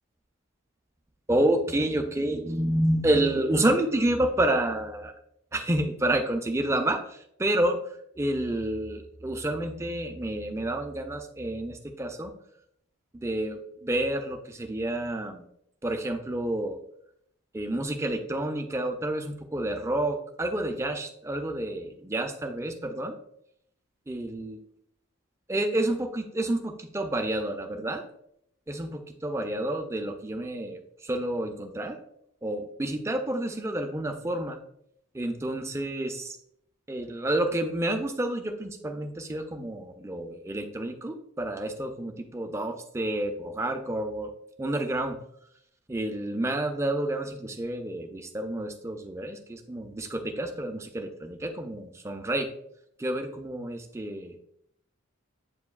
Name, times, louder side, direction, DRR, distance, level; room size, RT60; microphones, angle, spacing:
voice 1, 1.3-5.1 5.5-7.0 7.4-7.8 8.2-12.3 13.2-15.4 15.8-16.8 17.5-23.2 24.1-24.6 25.5-28.0 28.7-32.0 32.4-34.6 35.1-36.3 36.9-44.3 44.6-45.2 45.9-52.5 53.0-54.4, right 1 dB, 15° right, 5 dB, 0.3 m, -29 dB
7.7 x 2.6 x 2.3 m, 0.72 s
head